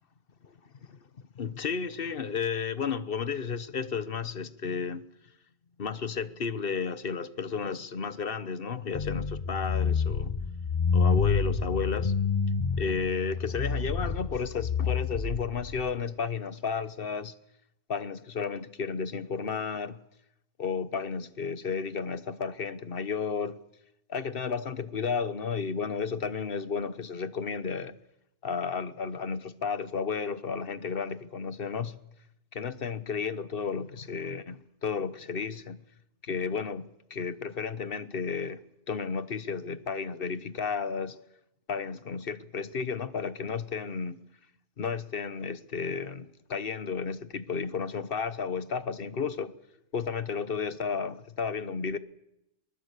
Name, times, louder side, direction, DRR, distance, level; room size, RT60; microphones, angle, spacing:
voice 1, 1.3-5.1 5.8-10.3 10.9-12.2 12.8-17.3 17.9-20.0 20.6-23.6 24.1-28.0 28.4-32.0 32.5-35.8 36.2-41.2 41.7-44.2 44.8-49.5 49.9-52.0, left 5 dB, 50° left, 1.2 m, -33 dB
sound 1, 8.9-15.8, left 5 dB, 30° left, 1.0 m, -28 dB
22.5 x 20.0 x 8.3 m
omnidirectional pair, 1.3 m